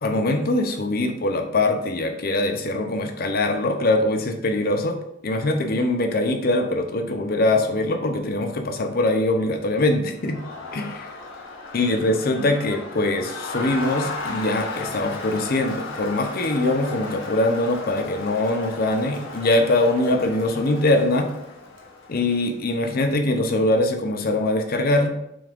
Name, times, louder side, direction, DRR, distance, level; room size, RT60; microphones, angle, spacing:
voice 1, 0.0-5.0 5.2-10.4 10.7-11.1 11.7-21.3 22.1-25.1, left 2 dB, 50° left, 5 dB, 0.6 m, -22 dB
Crowd, 10.1-22.6, left 3 dB, 75° left, 1.0 m, -35 dB
6.2 x 3.5 x 2.4 m, 0.81 s
head